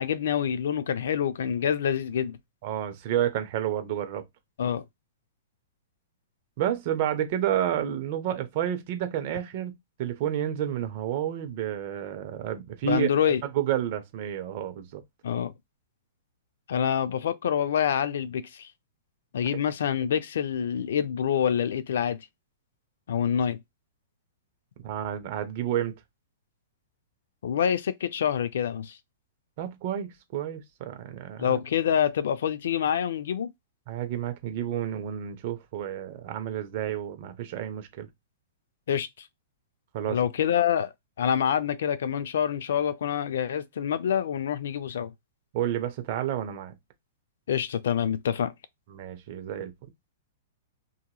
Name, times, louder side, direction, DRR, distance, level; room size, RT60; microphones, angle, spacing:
voice 1, 0.0-2.4 4.6-4.8 12.8-13.4 15.2-15.5 16.7-18.7 19.3-22.2 23.1-23.6 27.4-29.0 31.4-33.5 38.9-39.3 40.1-45.1 47.5-48.5, left 8 dB, 75° left, 0.4 m, -26 dB
voice 2, 2.6-4.2 6.6-13.1 13.5-15.0 24.8-25.9 29.6-31.6 33.9-38.1 39.9-40.2 45.5-46.7 48.9-49.7, right 10 dB, 40° right, 0.6 m, -30 dB
2.8 x 2.8 x 2.3 m
hypercardioid pair, 160°, 0 cm